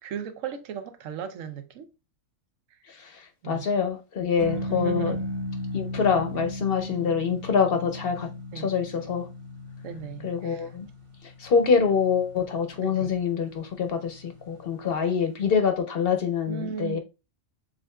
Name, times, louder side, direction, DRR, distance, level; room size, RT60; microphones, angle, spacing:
voice 1, 0.0-1.9 3.4-3.6 4.6-5.3 8.5-8.7 9.8-10.7 12.8-13.1 16.5-17.0, right 8 dB, 85° right, 1.0 m, -37 dB
voice 2, 2.9-5.2 5.7-8.3 8.5-9.3 10.2-10.9 11.2-17.0, left 6 dB, 60° left, 0.8 m, -25 dB
sound 1, 4.4-14.9, left 1 dB, 25° right, 1.1 m, -37 dB
7.2 x 2.5 x 2.3 m
omnidirectional pair, 1.3 m